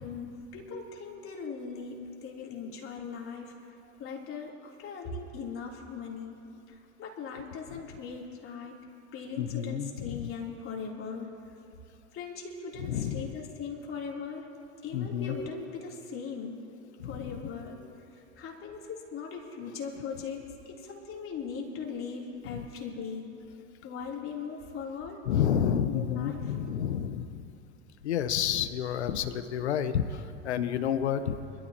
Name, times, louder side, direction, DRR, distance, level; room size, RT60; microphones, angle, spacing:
voice 1, 0.0-3.5 3.8-6.4 6.7-8.7 9.1-11.3 12.1-14.5 14.8-16.6 17.0-17.8 18.1-20.4 20.7-23.3 23.8-25.3 25.9-26.4, left 5 dB, 40° left, -2 dB, 3.4 m, -39 dB
voice 2, 9.4-10.3 12.8-13.3 14.9-15.3 17.0-17.4 22.4-22.7 25.3-27.5 28.0-31.4, left 9 dB, 80° left, 11 dB, 0.9 m, -30 dB
25.5 x 13.5 x 3.0 m, 2.9 s
hypercardioid pair, 85°, 33 cm